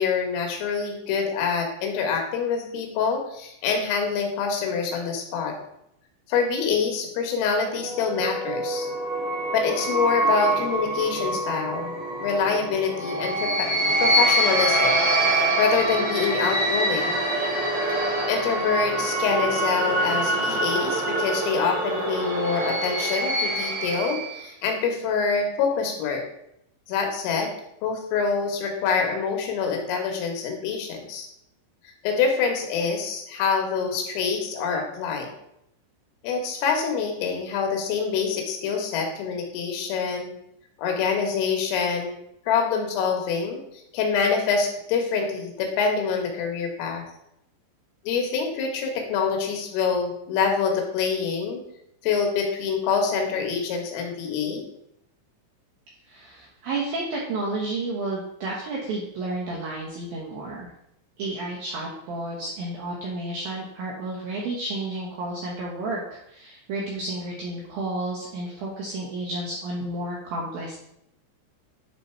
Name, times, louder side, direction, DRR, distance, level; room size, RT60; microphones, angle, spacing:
voice 1, 0.0-5.6 6.3-8.9 9.5-12.0 12.2-13.7 14.0-17.2 18.3-26.2 26.9-27.5 27.8-31.3 32.0-35.3 36.2-40.4 40.8-42.1 42.5-47.1 48.1-51.6 52.0-54.6, left 5 dB, 80° left, 2 dB, 3.9 m, -26 dB
sound 1, 7.6-24.4, right 1 dB, 35° right, 2.1 m, -25 dB
voice 2, 56.1-60.7 61.2-70.8, right 2 dB, 75° right, -4 dB, 2.2 m, -31 dB
10.5 x 4.1 x 4.4 m, 0.78 s
omnidirectional pair, 5.9 m